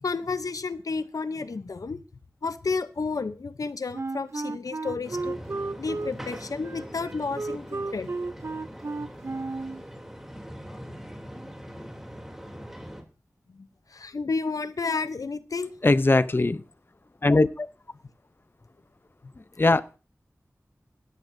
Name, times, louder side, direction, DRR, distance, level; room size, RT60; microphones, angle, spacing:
voice 1, 0.0-2.0 2.4-5.4 5.8-8.1 9.0-9.1 13.5-15.7, left 4 dB, 85° left, 13 dB, 0.7 m, -31 dB
Wind instrument woodwind instrument, 3.9-9.8, right 3 dB, 50° right, 0.5 m, -33 dB
sound 1, 5.0-13.0, equal, 5° right, 2.9 m, -42 dB
voice 2, 15.8-16.6 17.2-17.7 19.6-20.0, left 2 dB, 40° left, 14 dB, 0.6 m, -20 dB
17.0 x 12.5 x 2.6 m, 0.34 s
wide cardioid pair, 70°, 6 cm